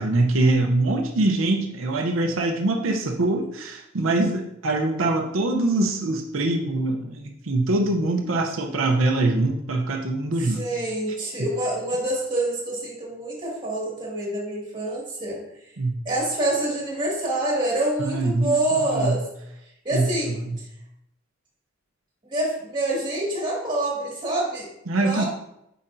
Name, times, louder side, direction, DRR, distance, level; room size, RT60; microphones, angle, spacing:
voice 1, 0.0-10.7 11.4-11.5 15.8-15.9 18.0-19.2 19.9-20.6 24.9-25.2, right 2 dB, 90° right, 2 dB, 0.7 m, -23 dB
voice 2, 10.4-15.7 16.1-19.2 19.8-20.7 22.2-25.2, right 1 dB, 25° right, -3 dB, 2.1 m, -27 dB
8.3 x 5.0 x 2.6 m, 0.81 s
head